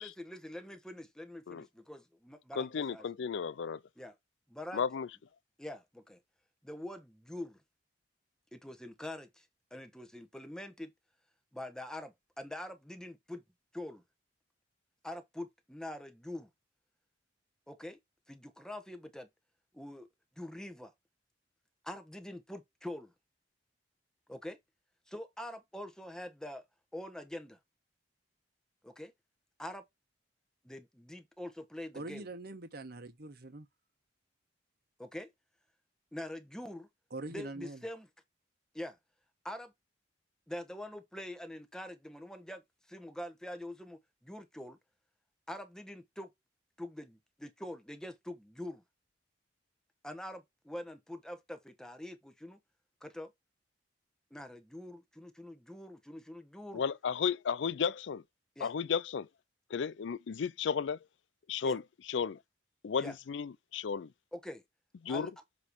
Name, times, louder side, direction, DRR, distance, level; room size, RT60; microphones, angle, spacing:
voice 1, 0.0-3.1 4.0-4.1 4.5-4.8 5.6-6.2 6.6-7.6 8.5-9.4 9.7-10.9 11.5-13.4 13.7-14.0 15.0-16.5 17.7-18.0 18.3-19.3 19.7-20.1 20.4-20.9 21.8-23.1 24.3-24.6 25.1-26.6 26.9-27.6 28.8-29.1 29.6-29.8 30.6-32.3 35.0-35.3 36.1-36.9 37.3-38.1 38.7-39.0 39.4-39.7 40.5-42.6 42.9-44.8 45.5-46.3 46.8-48.8 50.0-52.6 53.0-53.3 54.3-56.8 58.6-58.7 61.6-61.8 63.0-63.1 64.3-64.6 65.1-65.3, left 1 dB, 5° left, 1.1 m, -44 dB
voice 2, 2.5-3.8 4.7-5.1 56.7-58.2 58.6-59.3 59.7-61.0 61.5-61.8 62.1-62.4 62.8-64.1 65.0-65.3, left 6 dB, 75° left, 0.4 m, -33 dB
voice 3, 31.9-33.7 37.1-37.8, right 2 dB, 55° right, 1.3 m, -43 dB
7.6 x 3.2 x 4.6 m
head